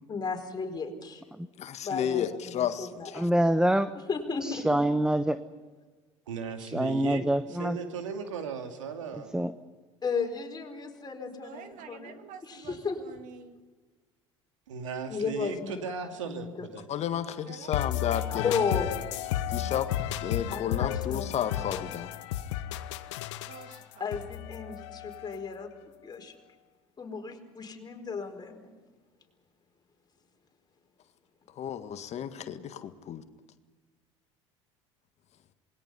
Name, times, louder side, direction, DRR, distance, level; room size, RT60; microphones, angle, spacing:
voice 1, 0.1-1.2 1.8-3.1 4.1-4.7 10.0-13.0 15.1-16.7 18.3-18.9 20.5-21.7 24.0-25.7 26.0-26.3 27.0-28.7, left 5 dB, 25° left, 3 dB, 4.7 m, -34 dB
voice 2, 1.6-3.3 16.9-18.9 19.5-19.9 20.2-22.1 31.6-33.2, left 9 dB, 45° left, 9 dB, 1.7 m, -32 dB
voice 3, 3.2-3.9 4.4-5.4 6.6-7.8 9.3-9.5, right 1 dB, 5° right, 12 dB, 1.0 m, -25 dB
voice 4, 6.3-9.4 14.7-16.9, right 5 dB, 80° right, 5 dB, 2.6 m, -37 dB
voice 5, 11.4-13.6 17.5-18.0 23.5-24.1, right 7 dB, 55° right, 8 dB, 2.3 m, -48 dB
sound 1, 17.7-25.6, left 12 dB, 70° left, 1.3 m, -33 dB
27.5 x 21.0 x 5.6 m, 1.3 s
hypercardioid pair, 70°, 16 cm